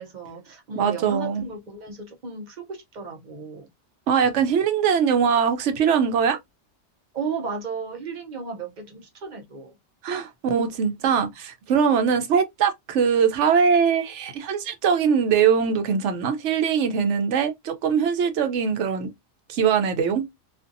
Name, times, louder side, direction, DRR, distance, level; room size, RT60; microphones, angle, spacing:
voice 1, 0.0-3.7 7.1-9.7, right 4 dB, 50° right, 0.7 m, -34 dB
voice 2, 0.8-1.5 4.1-6.4 10.0-19.1 19.5-20.3, right 7 dB, 85° right, 1.0 m, -22 dB
2.6 x 2.5 x 2.5 m
omnidirectional pair, 1.2 m